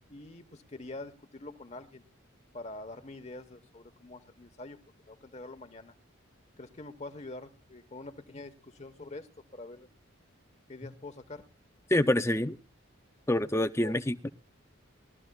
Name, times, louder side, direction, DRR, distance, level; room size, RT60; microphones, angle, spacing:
voice 1, 0.1-2.0 2.5-4.8 5.1-5.9 6.6-9.9 10.7-11.5 13.8-13.9, left 2 dB, 35° left, 9 dB, 1.2 m, -45 dB
voice 2, 11.9-12.6 13.3-14.3, left 1 dB, 15° left, 11 dB, 0.5 m, -26 dB
20.5 x 13.5 x 2.3 m, 0.33 s
head